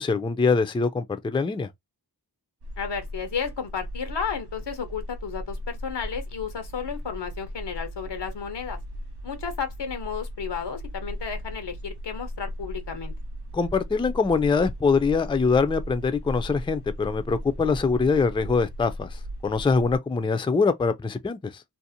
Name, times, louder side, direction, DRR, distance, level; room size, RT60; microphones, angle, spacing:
voice 1, 0.0-1.7 13.5-21.6, left 4 dB, 15° left, 0.3 m, -23 dB
sound 1, 2.6-20.0, equal, 70° right, 0.7 m, -37 dB
voice 2, 2.8-8.8 9.2-13.1, left 6 dB, 85° left, 0.8 m, -33 dB
2.6 x 2.0 x 2.7 m
cardioid pair, 45°, 41 cm